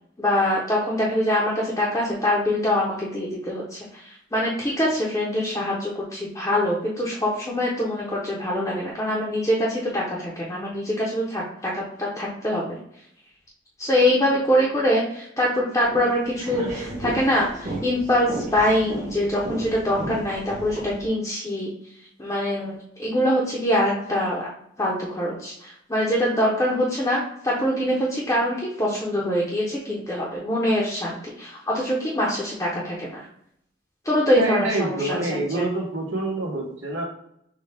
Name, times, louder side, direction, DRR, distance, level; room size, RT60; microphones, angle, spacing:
voice 1, 0.2-12.8 13.8-21.7 22.2-24.5 24.8-33.3 34.0-35.2 35.5-35.6, left 1 dB, 15° left, -5 dB, 0.7 m, -24 dB
sound 1, 15.8-21.1, right 1 dB, 40° right, 1.2 m, -34 dB
voice 2, 34.4-37.0, right 1 dB, 85° right, -1 dB, 1.3 m, -26 dB
6.4 x 2.3 x 3.4 m, 0.71 s
head